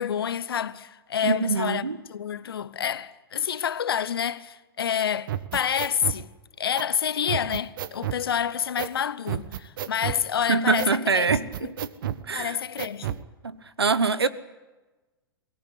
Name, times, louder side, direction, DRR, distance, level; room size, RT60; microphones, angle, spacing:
voice 1, 0.0-6.3 6.6-11.3 11.6-11.7 12.3-13.1, left 8 dB, 70° left, 1.0 m, -28 dB
voice 2, 1.2-2.0 10.5-12.6 13.4-14.3, right 4 dB, 85° right, 1.2 m, -25 dB
sound 1, 5.3-6.2 6.8-6.9 7.3-8.2 8.8-9.0 9.3-10.2 10.8-11.0 11.3-12.2 12.8-13.2, right 11 dB, 60° right, 1.1 m, -31 dB
22.5 x 18.5 x 9.2 m
figure-of-eight pair, 105°, 13 cm